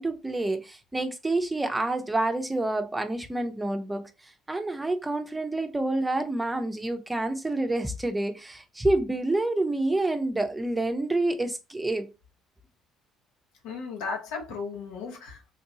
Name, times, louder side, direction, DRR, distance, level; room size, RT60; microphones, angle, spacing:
voice 1, 0.0-4.1 4.5-12.1, right 2 dB, 15° right, 0.7 m, -28 dB
voice 2, 13.6-15.5, left 4 dB, 75° left, 1.1 m, -35 dB
3.7 x 2.6 x 2.8 m
hypercardioid pair, 55°, 0 cm